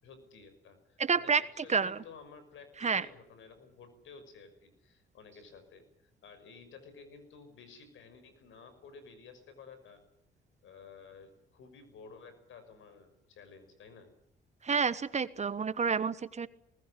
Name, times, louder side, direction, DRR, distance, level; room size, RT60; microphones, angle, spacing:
voice 1, 0.0-10.0 10.6-14.1, left 5 dB, 75° left, 10 dB, 5.9 m, -53 dB
voice 2, 1.0-1.4 1.7-2.0 2.8-3.1 14.6-16.5, right 5 dB, 35° right, 15 dB, 1.2 m, -29 dB
21.0 x 19.0 x 9.9 m, 0.74 s
cardioid pair, 90°, 20 cm